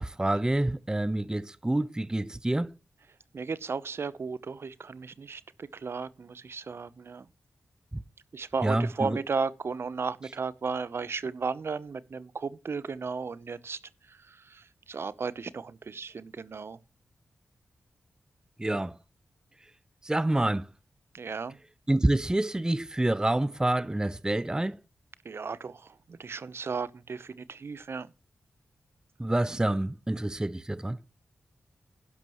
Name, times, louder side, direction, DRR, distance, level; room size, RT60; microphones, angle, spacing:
voice 1, 0.0-2.7 7.9-8.0 8.6-9.2 18.6-19.0 20.0-20.7 21.9-24.8 29.2-31.0, right 1 dB, 15° right, 0.5 m, -27 dB
voice 2, 3.3-7.3 8.3-16.8 21.1-21.6 25.2-28.1, right 5 dB, 60° right, 0.8 m, -35 dB
12.0 x 11.0 x 3.1 m
cardioid pair, 40°, 5 cm